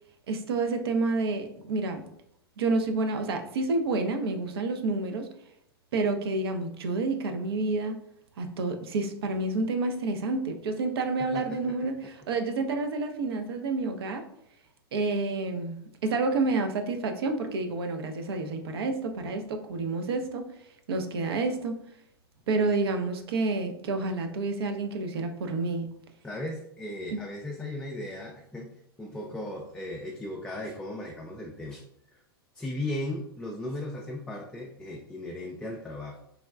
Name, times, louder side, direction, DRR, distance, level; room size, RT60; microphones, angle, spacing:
voice 1, 0.3-2.0 2.6-5.3 5.9-8.0 8.4-14.2 14.9-20.5 20.9-21.8 22.5-25.9 27.1-27.2, right 3 dB, 70° right, 6 dB, 0.5 m, -29 dB
voice 2, 11.3-11.9 26.2-31.8 32.1-32.2 32.5-36.2, left 1 dB, 5° left, -1 dB, 0.3 m, -37 dB
3.4 x 2.1 x 2.3 m, 0.74 s
hypercardioid pair, 105°, 13 cm